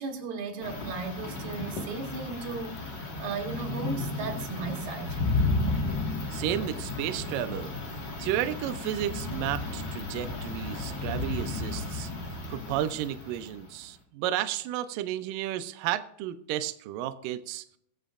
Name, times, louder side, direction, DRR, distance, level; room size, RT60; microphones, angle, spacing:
voice 1, 0.0-5.2, right 4 dB, 70° right, 3.5 m, -36 dB
sound 1, 0.6-13.7, left 3 dB, 50° left, 1.3 m, -33 dB
voice 2, 6.3-7.7 8.2-12.1 12.5-17.6, right 12 dB, 90° right, 1.9 m, -32 dB
22.0 x 7.6 x 2.4 m
omnidirectional pair, 4.8 m